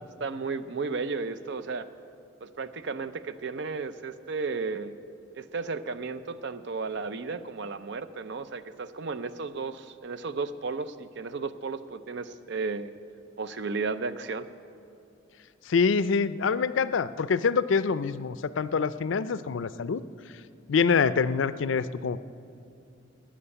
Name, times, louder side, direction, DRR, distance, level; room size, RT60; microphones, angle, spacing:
voice 1, 0.2-1.9 2.4-4.9 5.3-12.9 13.4-14.5, right 4 dB, 65° right, 12 dB, 0.6 m, -34 dB
voice 2, 15.7-20.0 20.7-22.2, left 5 dB, 75° left, 15 dB, 0.4 m, -25 dB
12.5 x 8.7 x 9.8 m, 2.6 s
head